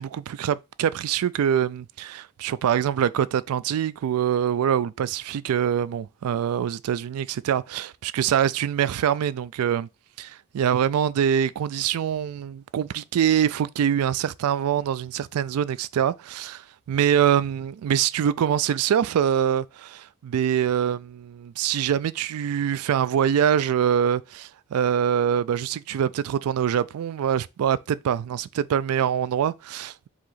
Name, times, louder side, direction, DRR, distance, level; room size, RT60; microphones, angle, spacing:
voice 1, 0.0-9.9 10.2-16.6 16.9-30.1, right 9 dB, 80° right, 0.3 m, -24 dB
4.7 x 2.8 x 4.0 m
head